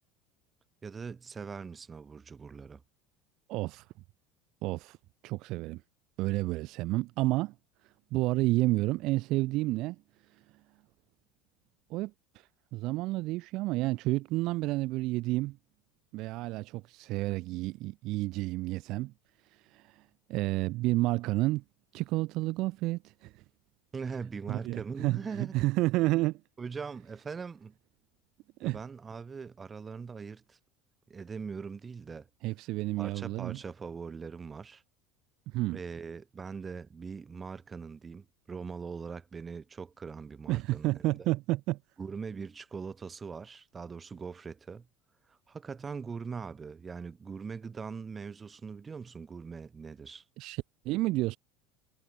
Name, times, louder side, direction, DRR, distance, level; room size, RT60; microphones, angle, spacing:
voice 1, 0.8-2.8 23.9-25.5 26.6-27.8 28.6-30.6 31.1-32.3 33.0-34.8 35.7-41.3 42.0-44.9 45.3-50.2, right 5 dB, 20° right, 2.0 m, -41 dB
voice 2, 3.5-3.8 4.6-5.0 5.2-5.8 6.2-7.5 8.1-10.0 11.9-15.6 16.1-19.1 19.7-20.0 20.3-21.6 21.9-23.4 24.5-26.4 28.6-28.8 32.4-33.6 35.5-35.8 40.5-41.8 50.4-51.4, right 19 dB, 50° right, 0.6 m, -30 dB
supercardioid pair, 150°, 0 cm